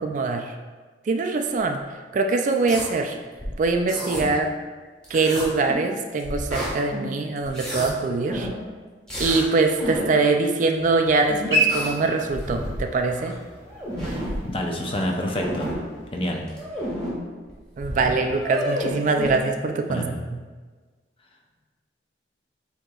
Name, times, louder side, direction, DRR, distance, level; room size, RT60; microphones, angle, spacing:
voice 1, 0.0-0.6 1.1-1.8 2.1-3.2 3.6-4.5 5.1-8.5 9.2-13.4 17.8-20.4, right 3 dB, 45° right, 5 dB, 0.3 m, -23 dB
sound 1, 2.5-2.9 3.4-4.2 5.0-5.9 6.2-7.1 7.4-7.9 8.3-8.6 9.1-9.4 9.8-10.1 11.3-12.0 12.3-12.9 13.3-13.4 13.6-14.4 15.0-15.7 16.5-17.1 17.5-17.6 17.8-19.3, equal, 5° left, 1.3 m, -31 dB
sound 2, 10.7-16.6, right 1 dB, 15° right, 0.9 m, -31 dB
voice 2, 14.4-15.7 16.1-16.5 19.9-20.2, left 1 dB, 30° left, 1 dB, 0.5 m, -27 dB
7.7 x 2.8 x 2.3 m, 1.4 s
head